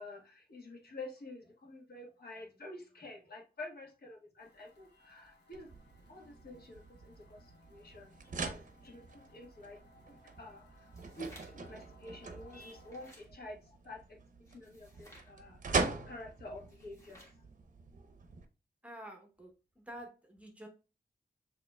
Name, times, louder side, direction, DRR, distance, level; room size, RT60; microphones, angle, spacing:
voice 1, 0.0-5.7 6.1-7.4 7.7-9.8 10.1-10.7 11.2-14.2 14.5-17.2, left 2 dB, 65° left, -1 dB, 1.4 m, -49 dB
sound 1, 4.4-13.1, left 1 dB, 90° left, 1.4 m, -63 dB
sound 2, 5.5-18.5, right 4 dB, 50° right, 0.6 m, -42 dB
sound 3, 10.8-11.7 12.4-13.3 14.5-15.3 16.6-17.4, equal, 15° left, 1.4 m, -59 dB
voice 2, 18.8-20.7, right 1 dB, 10° right, 2 dB, 0.8 m, -49 dB
6.6 x 2.9 x 2.2 m, 0.32 s
wide cardioid pair, 140°, 17 cm